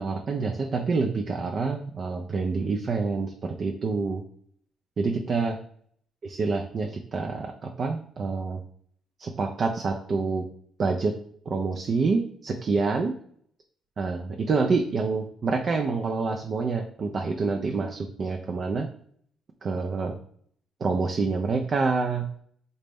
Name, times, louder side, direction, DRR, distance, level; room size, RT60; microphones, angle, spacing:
voice 1, 0.0-4.2 5.0-5.6 6.2-8.6 9.2-10.5 10.8-11.2 11.5-13.1 14.0-18.9 19.6-20.2 20.8-22.4, right 4 dB, 50° right, 3 dB, 0.4 m, -27 dB
3.9 x 2.1 x 3.3 m, 0.63 s
cardioid pair, 90°, 0 cm